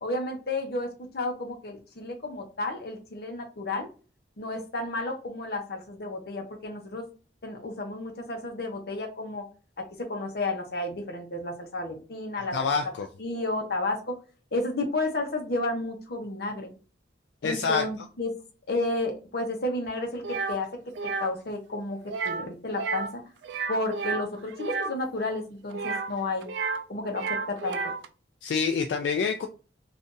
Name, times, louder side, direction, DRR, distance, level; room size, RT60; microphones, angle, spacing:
voice 1, 0.0-3.9 4.4-7.1 7.4-9.4 9.8-12.7 13.2-14.2 14.5-16.7 17.4-18.3 18.7-20.7 21.2-22.0 22.2-23.2 23.7-26.5 26.9-27.8, left 2 dB, 60° left, 3 dB, 0.8 m, -32 dB
voice 2, 12.4-13.1 17.4-17.8 28.4-29.5, left 5 dB, 85° left, 6 dB, 0.3 m, -27 dB
sound 1, 20.2-20.6 20.9-21.3 22.1-22.5 22.7-23.1 23.4-24.9 25.7-26.8 27.1-28.1, right 4 dB, 80° right, 0.4 m, -31 dB
2.6 x 2.5 x 3.6 m, 0.35 s
head